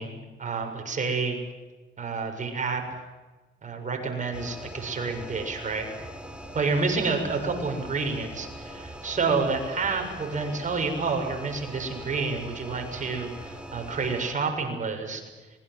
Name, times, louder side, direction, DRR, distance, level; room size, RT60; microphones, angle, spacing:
voice 1, 0.0-1.4 2.0-2.8 3.6-5.9 6.5-15.2, right 4 dB, 40° right, 3 dB, 7.1 m, -29 dB
sound 1, 4.3-14.3, right 1 dB, 5° right, 3.8 m, -42 dB
26.5 x 22.5 x 7.9 m, 1.2 s
cardioid pair, 90°, 20 cm